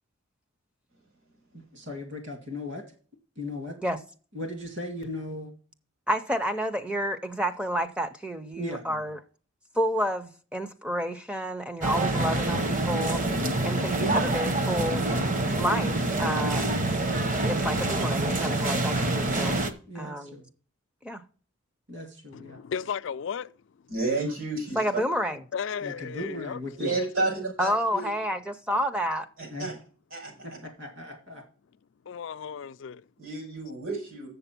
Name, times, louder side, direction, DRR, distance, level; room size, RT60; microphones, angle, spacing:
voice 1, 1.5-2.8 3.4-3.8 4.3-5.5 8.6-9.1 13.1-13.7 19.9-20.5 21.9-22.6 25.8-26.9 29.5-29.7 30.4-31.4, left 1 dB, 55° right, 2.1 m, -37 dB
voice 2, 6.1-9.2 9.8-13.2 13.6-15.0 15.6-16.6 17.4-19.5 19.9-20.3 21.0-21.2 24.8-25.4 27.6-29.3, equal, 5° right, 0.5 m, -30 dB
sound 1, 11.8-19.7, right 2 dB, 35° right, 0.9 m, -26 dB
voice 3, 22.3-23.5 25.5-26.6 27.0-27.1 32.1-33.0, left 7 dB, 60° left, 0.3 m, -34 dB
voice 4, 23.9-24.8 26.8-28.1 29.4-29.7 30.1-30.5 33.2-34.3, right 2 dB, 75° right, 5.1 m, -31 dB
7.4 x 6.9 x 5.8 m
head